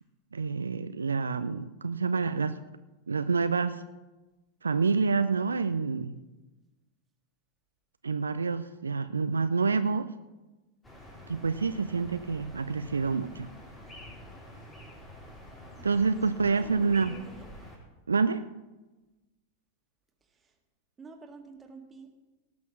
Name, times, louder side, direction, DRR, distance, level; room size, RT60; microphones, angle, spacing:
voice 1, 0.3-2.6 3.1-3.8 4.6-6.2 8.0-10.1 11.3-13.5 15.8-17.1 18.1-18.4, right 4 dB, 75° right, 12 dB, 0.4 m, -27 dB
sound 1, 10.8-17.8, equal, 15° left, 4.3 m, -48 dB
voice 2, 16.5-17.5 20.2-20.6 21.0-22.1, right 4 dB, 15° right, 3 dB, 1.8 m, -50 dB
17.5 x 6.2 x 6.2 m, 1.1 s
figure-of-eight pair, 90°, 0 cm